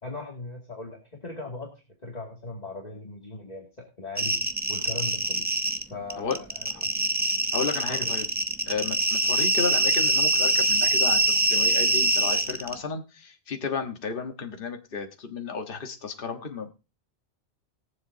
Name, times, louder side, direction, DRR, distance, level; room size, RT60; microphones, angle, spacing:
voice 1, 0.0-1.7 2.0-4.4 4.7-5.5 5.9-6.9 7.9-8.1, left 3 dB, 35° left, -2 dB, 2.4 m, -38 dB
sound 1, 4.2-5.8 6.1-12.7, right 2 dB, 10° right, 0.7 m, -24 dB
voice 2, 7.5-8.2 8.7-11.2 11.5-16.7, left 5 dB, 50° left, 4 dB, 1.5 m, -32 dB
21.5 x 7.6 x 2.7 m, 0.30 s
omnidirectional pair, 1.2 m